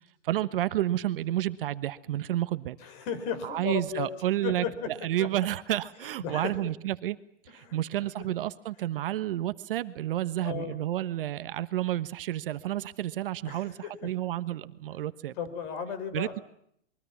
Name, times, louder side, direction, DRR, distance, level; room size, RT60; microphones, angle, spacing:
voice 1, 0.2-2.8 3.4-7.2 7.4-15.3 16.1-16.4, right 13 dB, 50° right, 14 dB, 1.2 m, -30 dB
voice 2, 2.8-4.1 4.4-4.9 5.2-5.3 6.0-6.7 7.6-7.8 8.2-8.3 10.4-10.8 13.5-14.1 15.4-16.4, left 7 dB, 35° left, 12 dB, 4.9 m, -35 dB
26.0 x 23.0 x 7.2 m, 0.70 s
hypercardioid pair, 145°, 35 cm